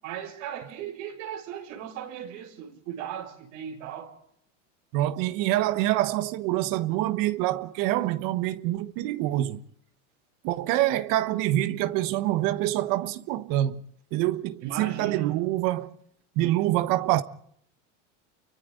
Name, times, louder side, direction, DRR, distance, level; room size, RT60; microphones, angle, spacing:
voice 1, 0.0-4.1 14.6-15.4, right 9 dB, 80° right, 6.4 m, -37 dB
voice 2, 4.9-9.6 10.4-13.8 14.1-15.9 16.4-17.2, right 15 dB, 60° right, 1.4 m, -26 dB
29.0 x 24.0 x 3.9 m
supercardioid pair, 120°, 37 cm